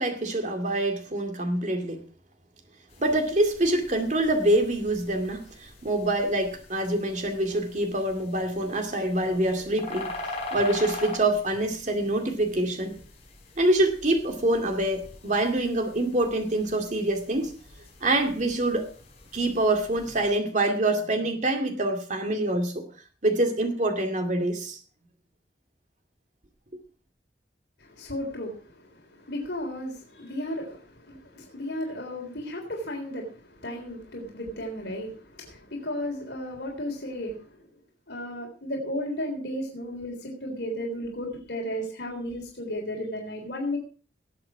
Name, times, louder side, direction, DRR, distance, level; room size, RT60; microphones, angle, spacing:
voice 1, 0.0-2.0 3.0-10.1 10.5-13.0 13.6-17.5 18.0-18.9 19.3-22.8 23.2-24.8, right 1 dB, 45° right, 2.3 m, -25 dB
sound 1, 2.9-20.3, left 2 dB, 35° left, 5.0 m, -43 dB
voice 2, 27.8-37.6 38.1-43.8, left 1 dB, 75° left, 3.6 m, -34 dB
19.0 x 7.8 x 4.8 m
head